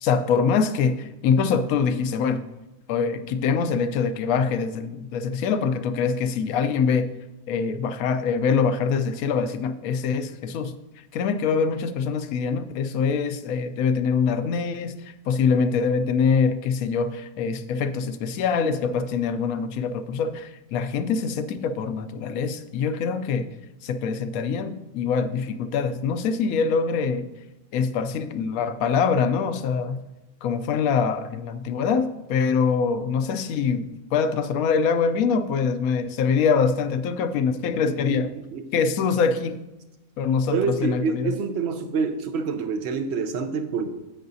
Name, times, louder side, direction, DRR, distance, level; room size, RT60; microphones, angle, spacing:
voice 1, 0.0-2.4 2.9-7.1 7.5-10.7 11.1-23.5 23.8-27.3 27.7-30.0 30.4-38.3 38.7-39.6 40.2-41.3, left 5 dB, 80° left, 10 dB, 1.0 m, -24 dB
voice 2, 40.5-43.9, right 5 dB, 55° right, 7 dB, 0.9 m, -26 dB
10.5 x 7.7 x 2.7 m, 0.99 s
omnidirectional pair, 1.5 m